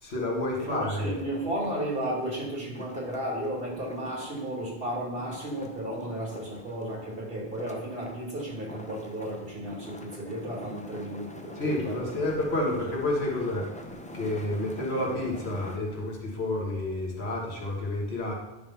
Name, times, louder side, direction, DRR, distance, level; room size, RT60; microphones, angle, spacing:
voice 1, 0.0-1.2 11.6-13.7 14.1-18.3, left 1 dB, 80° left, -2 dB, 1.9 m, -30 dB
sound 1, 0.6-15.8, left 1 dB, 10° left, 0.5 m, -46 dB
voice 2, 0.6-12.2, right 1 dB, 60° right, -3 dB, 2.4 m, -34 dB
10.0 x 3.7 x 5.7 m, 1.0 s
omnidirectional pair, 1.1 m